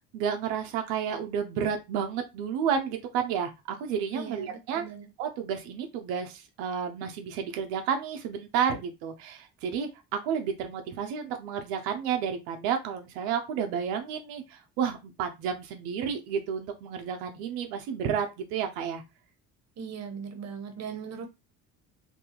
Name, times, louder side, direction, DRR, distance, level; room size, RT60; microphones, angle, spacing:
voice 1, 0.1-4.8 5.2-19.0, right 7 dB, 85° right, 0.6 m, -31 dB
voice 2, 4.1-5.1 19.8-21.3, right 6 dB, 45° right, 0.8 m, -39 dB
2.7 x 2.3 x 2.9 m
supercardioid pair, 90°, 36 cm